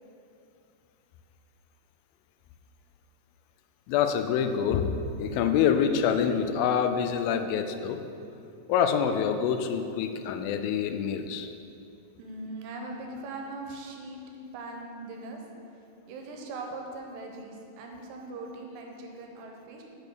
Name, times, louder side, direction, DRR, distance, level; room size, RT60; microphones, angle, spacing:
voice 1, 3.9-4.9 5.2-8.0 8.7-11.5, left 7 dB, 90° left, 7 dB, 2.3 m, -26 dB
voice 2, 12.2-14.2 14.5-15.4 16.1-19.8, right 2 dB, 85° right, 1 dB, 2.4 m, -40 dB
6.5 x 5.3 x 6.0 m, 2.6 s
omnidirectional pair, 4.0 m